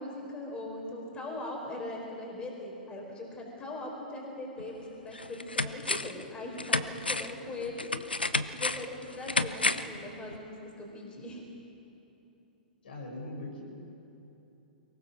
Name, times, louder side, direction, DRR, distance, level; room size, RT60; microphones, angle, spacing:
voice 1, 0.0-7.9 8.5-11.4, left 2 dB, 20° left, 0 dB, 4.8 m, -40 dB
sound 1, 4.6-4.7 5.1-6.2 6.6-10.0 10.3-10.4, left 3 dB, 90° left, 0.7 m, -31 dB
voice 2, 12.8-13.7, left 2 dB, 70° left, -2 dB, 6.8 m, -40 dB
23.0 x 20.0 x 6.2 m, 3.0 s
figure-of-eight pair, 105°, 5 cm